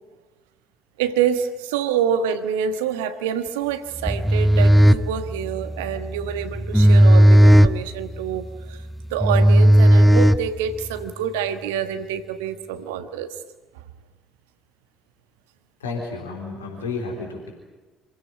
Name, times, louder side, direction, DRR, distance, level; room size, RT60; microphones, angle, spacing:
voice 1, 1.0-8.8 9.1-13.3, right 8 dB, 70° right, 10 dB, 1.3 m, -26 dB
sound 1, 4.0-10.9, equal, ahead, 0.9 m, -15 dB
voice 2, 15.8-17.5, left 4 dB, 75° left, 0 dB, 3.7 m, -31 dB
26.5 x 16.0 x 9.8 m, 1.2 s
figure-of-eight pair, 55°, 0 cm